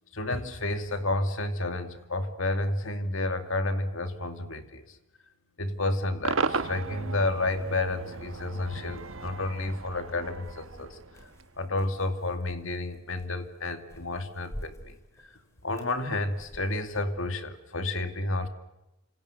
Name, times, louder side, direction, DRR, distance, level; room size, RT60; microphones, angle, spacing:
voice 1, 0.1-5.0 5.6-11.0 11.6-15.3 15.6-18.5, left 2 dB, 65° left, 7 dB, 2.5 m, -31 dB
Cheering / Crowd / Fireworks, 6.2-11.5, right 4 dB, 70° right, 1.4 m, -35 dB
sound 1, 10.4-17.2, equal, 15° left, 4.5 m, -49 dB
29.0 x 27.0 x 6.7 m, 0.91 s
head